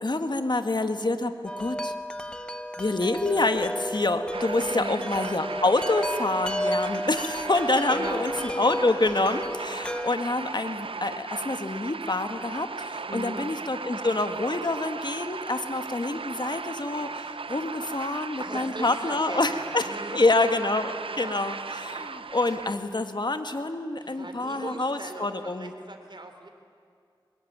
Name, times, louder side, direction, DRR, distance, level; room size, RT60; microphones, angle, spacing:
voice 1, 0.0-1.9 2.8-19.8 20.1-25.7, left 2 dB, 55° left, 8 dB, 1.8 m, -27 dB
Wind chime, 1.5-10.1, equal, 10° left, 1.3 m, -33 dB
sound 1, 4.3-22.7, right 4 dB, 85° right, 0.6 m, -37 dB
voice 2, 4.7-5.0 7.9-8.3 13.1-13.4 17.9-19.6 19.8-20.2 21.1-21.3 24.0-26.5, right 2 dB, 60° right, 5 dB, 3.4 m, -39 dB
23.5 x 21.5 x 9.5 m, 2.3 s
wide cardioid pair, 40°, 9 cm